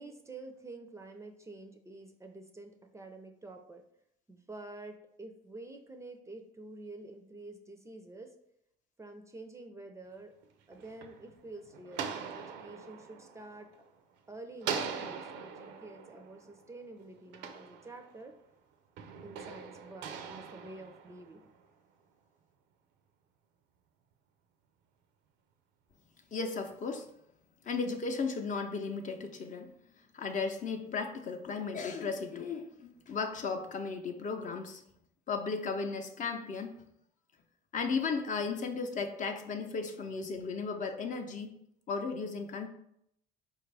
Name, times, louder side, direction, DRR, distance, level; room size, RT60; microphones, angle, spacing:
voice 1, 0.0-3.8 4.3-8.3 9.0-10.3 10.7-13.7 14.3-18.3 19.2-21.5, right 2 dB, 15° right, 5 dB, 0.4 m, -48 dB
sound 1, 10.4-14.1 14.6-18.4 19.0-21.6, right 6 dB, 75° right, 0.5 m, -42 dB
voice 2, 26.3-27.1 27.6-29.7 30.1-34.8 35.3-36.8 37.7-41.6 41.9-42.7, left 4 dB, 45° left, 5 dB, 0.6 m, -35 dB
4.3 x 2.4 x 3.3 m, 0.74 s
supercardioid pair, 80°, 18 cm